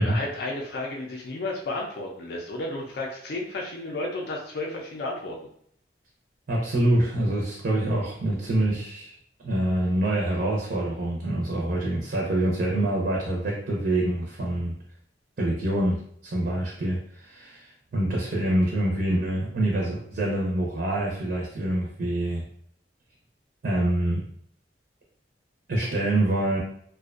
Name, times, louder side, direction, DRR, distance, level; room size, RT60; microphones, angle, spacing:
voice 1, 0.0-5.4, left 2 dB, 65° left, -1 dB, 0.4 m, -32 dB
voice 2, 6.5-9.1 9.4-14.8 15.4-22.4 23.6-24.3 25.7-26.6, right 1 dB, 60° right, -2 dB, 0.5 m, -26 dB
2.4 x 2.2 x 2.4 m, 0.66 s
head